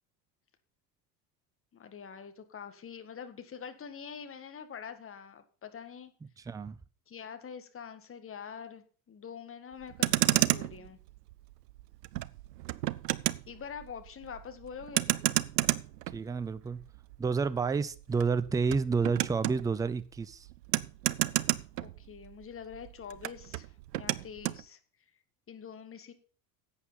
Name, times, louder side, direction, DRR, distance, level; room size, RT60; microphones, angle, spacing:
voice 1, 1.7-6.1 7.1-11.0 13.5-15.2 21.8-24.8 25.5-26.1, left 7 dB, 25° left, 1.9 m, -45 dB
voice 2, 6.5-6.8 16.1-16.8 17.2-20.4, right 5 dB, 10° right, 0.5 m, -30 dB
Motor vehicle (road), 9.8-22.4 22.7-24.6, right 15 dB, 70° right, 0.7 m, -32 dB
11.0 x 8.2 x 5.7 m
figure-of-eight pair, 75°, 50 cm